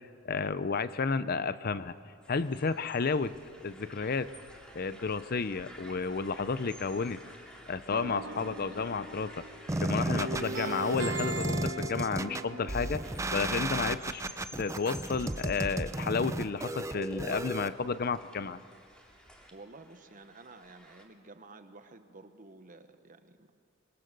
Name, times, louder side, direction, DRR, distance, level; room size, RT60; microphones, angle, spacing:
voice 1, 0.2-1.9 2.3-3.4 3.6-4.3 4.7-7.2 7.7-9.4 9.8-13.0 13.3-14.2 14.6-18.6, left 4 dB, 45° left, 14 dB, 0.6 m, -32 dB
sound 1, 2.2-21.0, equal, 5° left, 2.6 m, -52 dB
sound 2, 7.9-9.8 10.1-13.2, right 2 dB, 60° right, 1.3 m, -39 dB
sound 3, 9.7-17.7, right 1 dB, 15° right, 0.5 m, -34 dB
voice 2, 19.5-23.5, right 3 dB, 40° right, 9 dB, 1.1 m, -52 dB
25.0 x 23.0 x 6.7 m, 2.4 s
head